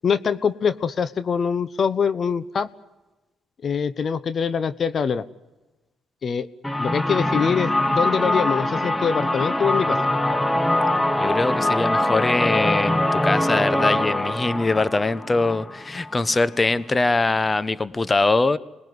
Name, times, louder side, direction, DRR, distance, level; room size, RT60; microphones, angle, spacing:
voice 1, 0.0-2.7 3.6-5.2 6.2-6.5 6.8-10.0, left 6 dB, 50° left, 1.0 m, -23 dB
sound 1, 6.6-16.3, left 1 dB, 10° left, 1.3 m, -23 dB
voice 2, 11.1-18.6, left 3 dB, 25° left, 1.1 m, -22 dB
26.5 x 20.5 x 9.6 m
hypercardioid pair, 55°, 0 cm